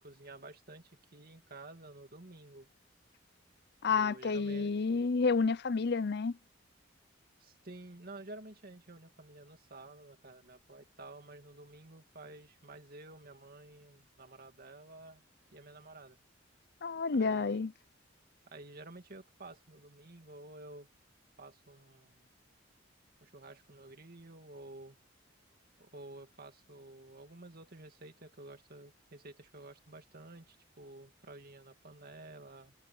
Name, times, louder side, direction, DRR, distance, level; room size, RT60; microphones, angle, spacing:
voice 1, 0.0-2.7 3.9-4.7 7.4-15.2 15.5-16.2 17.1-17.7 18.5-20.9 21.4-22.3 23.2-25.0 25.8-32.7, right 2 dB, 50° right, 2.3 m, -51 dB
voice 2, 3.8-6.4 16.8-17.7, left 4 dB, 55° left, 0.6 m, -30 dB
head